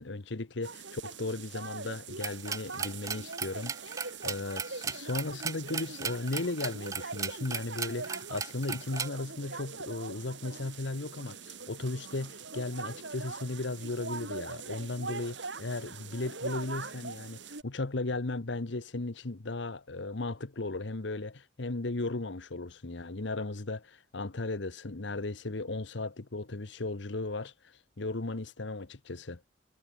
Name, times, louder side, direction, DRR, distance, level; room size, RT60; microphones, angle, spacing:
voice 1, 0.0-27.5 28.0-29.4, left 2 dB, 70° left, 1.1 m, -36 dB
sound 1, 0.6-17.6, right 4 dB, 70° right, 2.9 m, -42 dB
sound 2, 2.2-9.1, right 6 dB, 15° right, 0.3 m, -36 dB
head